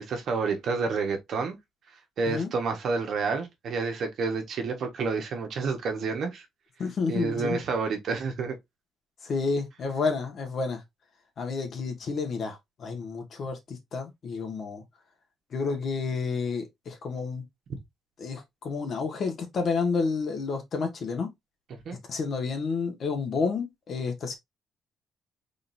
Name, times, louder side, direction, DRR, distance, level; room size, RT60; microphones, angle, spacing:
voice 1, 0.0-1.6 2.2-6.4 7.1-8.6 21.8-22.0, right 4 dB, 65° right, 1.4 m, -29 dB
voice 2, 6.8-7.6 9.2-10.8 11.4-14.8 15.5-17.4 18.2-21.3 22.1-24.4, left 4 dB, 55° left, 1.6 m, -30 dB
3.9 x 3.9 x 2.7 m
cardioid pair, 90°, 0 cm